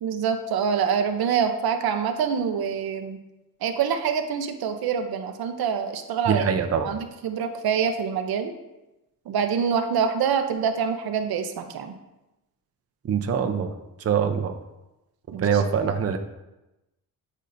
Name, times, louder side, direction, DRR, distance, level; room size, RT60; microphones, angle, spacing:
voice 1, 0.0-3.2 3.6-6.5 6.8-8.5 9.3-11.9 15.3-15.6, right 7 dB, 85° right, 7 dB, 0.7 m, -25 dB
voice 2, 6.3-6.9 13.0-13.7 14.0-14.5 15.3-16.2, right 7 dB, 40° right, 6 dB, 0.6 m, -23 dB
8.3 x 5.4 x 2.6 m, 0.98 s
cardioid pair, 100°, 36 cm